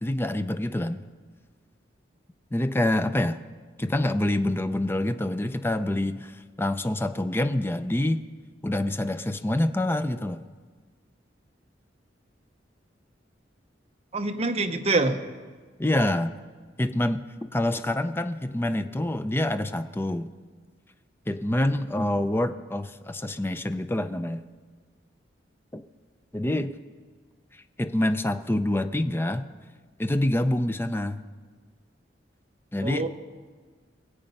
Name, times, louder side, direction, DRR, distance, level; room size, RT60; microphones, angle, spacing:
voice 1, 0.0-1.0 2.5-3.4 3.8-6.3 6.6-8.2 8.6-10.4 15.8-16.4 16.8-17.2 17.5-20.3 21.3-24.4 25.7-25.8 26.3-26.7 27.8-29.5 30.0-31.2 32.7-33.1, left 1 dB, 10° left, 10 dB, 0.5 m, -26 dB
voice 2, 14.1-15.2 32.8-33.1, right 2 dB, 35° right, 6 dB, 0.8 m, -25 dB
23.0 x 8.2 x 5.4 m, 1.5 s
head